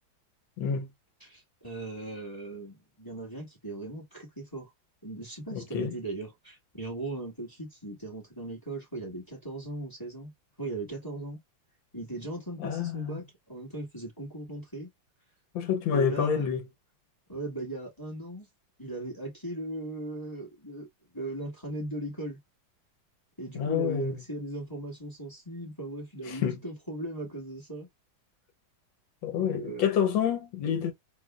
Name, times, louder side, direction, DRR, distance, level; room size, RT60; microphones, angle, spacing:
voice 1, 0.6-0.9 5.5-5.9 12.6-13.2 15.5-16.6 23.5-24.2 26.3-26.5 29.2-30.9, left 8 dB, 90° left, 1.7 m, -28 dB
voice 2, 1.2-4.7 5.0-10.3 10.6-11.4 11.9-14.9 15.9-16.6 17.3-18.5 18.8-20.9 21.1-22.4 23.4-27.9 29.3-29.9, right 2 dB, 10° left, 1.9 m, -38 dB
3.8 x 3.1 x 2.3 m
omnidirectional pair, 2.0 m